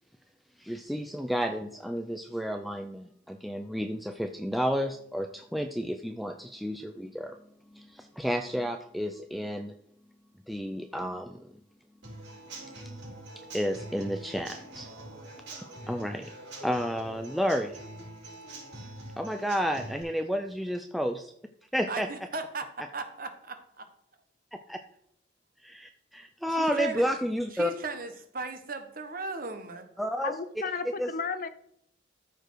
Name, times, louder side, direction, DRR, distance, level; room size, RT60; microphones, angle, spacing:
voice 1, 0.6-7.4 7.7-9.7 10.5-11.5 13.5-14.9 15.3-16.3 16.6-17.8 19.2-21.3 21.7-22.1 24.5-24.8 25.6-27.7 30.0-30.3 31.0-31.1, equal, ahead, 5 dB, 0.4 m, -31 dB
Human voice / Acoustic guitar / Drum, 12.0-20.0, right 1 dB, 70° right, 4.5 m, -44 dB
voice 2, 21.9-23.9 26.6-27.1 27.5-29.9, right 2 dB, 50° right, 7 dB, 1.2 m, -37 dB
voice 3, 30.2-31.5, left 5 dB, 45° left, 12 dB, 0.6 m, -33 dB
13.5 x 4.9 x 4.7 m, 0.72 s
head